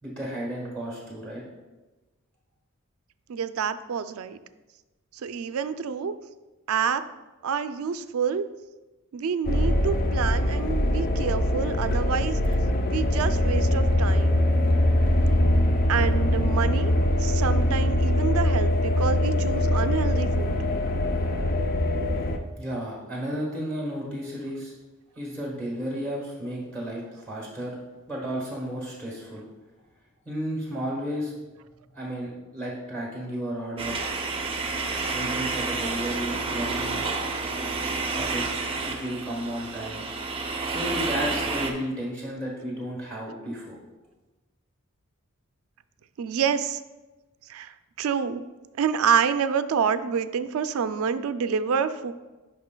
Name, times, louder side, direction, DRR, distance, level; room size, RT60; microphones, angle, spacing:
voice 1, 0.0-1.4 22.6-24.7 25.2-27.7 28.1-29.4 30.2-31.3 31.9-34.0 35.1-37.0 38.1-38.5 38.9-40.1 40.6-43.8, equal, 5° left, -3 dB, 1.2 m, -33 dB
voice 2, 3.3-4.4 5.1-6.1 6.7-7.0 7.4-8.4 9.1-12.6 12.9-14.5 15.9-16.9 17.2-20.6 46.2-46.8 47.5-48.4 48.8-52.1, right 6 dB, 75° right, 11 dB, 0.4 m, -27 dB
sound 1, 9.5-22.4, left 1 dB, 45° left, 0.5 m, -23 dB
sound 2, 33.8-41.7, right 3 dB, 25° right, 0.6 m, -30 dB
9.4 x 5.5 x 2.2 m, 1.2 s
head